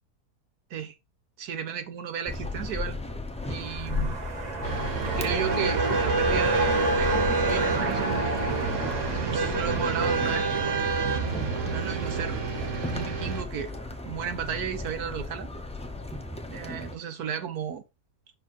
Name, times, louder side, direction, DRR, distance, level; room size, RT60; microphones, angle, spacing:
voice 1, 1.4-3.0 3.5-4.1 5.0-8.4 9.1-10.8 11.6-12.4 12.9-13.7 14.0-15.5 16.5-17.8, right 8 dB, 75° right, 1.5 m, -34 dB
sound 1, 2.3-17.0, left 2 dB, 5° left, 0.6 m, -36 dB
sound 2, 3.4-13.8 14.1-14.2, right 2 dB, 40° right, 0.7 m, -33 dB
sound 3, 4.6-13.4, right 4 dB, 55° right, 1.3 m, -28 dB
5.8 x 4.6 x 4.3 m
omnidirectional pair, 1.6 m